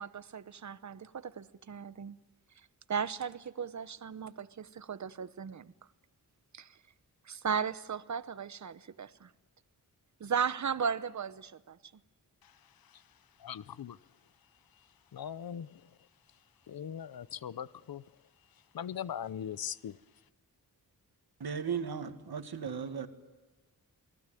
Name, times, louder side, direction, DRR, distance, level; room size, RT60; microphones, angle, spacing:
voice 1, 0.0-2.2 2.9-5.7 6.5-6.7 7.3-9.3 10.2-11.8, right 6 dB, 50° right, 0.9 m, -36 dB
voice 2, 13.4-14.0 15.1-15.8 16.7-18.0 18.7-20.0, left 9 dB, 65° left, 0.8 m, -40 dB
voice 3, 21.4-23.1, right 6 dB, 75° right, 2.0 m, -36 dB
28.5 x 19.5 x 9.2 m
wide cardioid pair, 165°, 38 cm